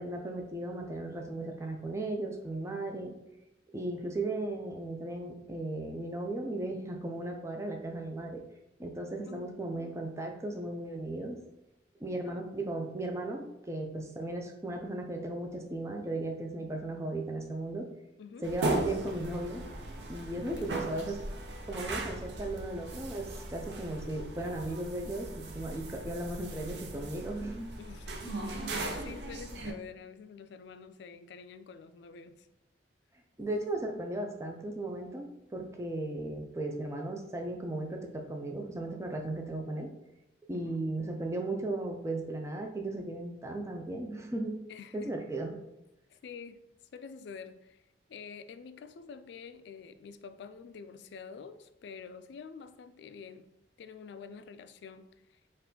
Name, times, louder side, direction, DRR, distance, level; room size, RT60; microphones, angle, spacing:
voice 1, 0.0-3.1 3.7-8.4 8.8-11.4 12.0-17.9 18.4-19.6 20.1-21.2 21.7-27.7 33.4-35.3 35.5-39.9 40.5-44.6 44.9-45.6, right 2 dB, 15° right, 0.4 m, -36 dB
voice 2, 9.2-9.6 12.2-12.6 18.2-18.5 20.3-21.0 27.8-32.5 40.5-40.8 44.7-45.1 46.1-46.6 46.9-47.8 48.1-53.5 53.8-55.4, left 6 dB, 70° left, 0.3 m, -48 dB
sound 1, 18.4-29.7, right 2 dB, 70° right, 0.6 m, -38 dB
4.5 x 2.4 x 3.8 m
head